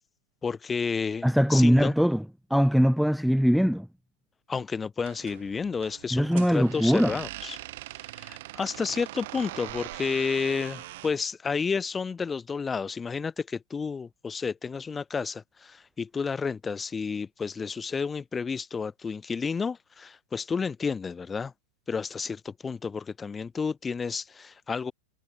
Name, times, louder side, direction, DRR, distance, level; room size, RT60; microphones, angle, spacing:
voice 1, 0.4-1.9 4.5-7.6 8.2-21.5 21.9-24.9, left 5 dB, 15° left, 1.8 m, -31 dB
voice 2, 1.2-2.2 2.5-3.9 6.1-7.2, equal, ahead, 0.4 m, -21 dB
sound 1, 5.0-11.2, right 18 dB, 65° right, 2.8 m, -42 dB
supercardioid pair, 135°, 0 cm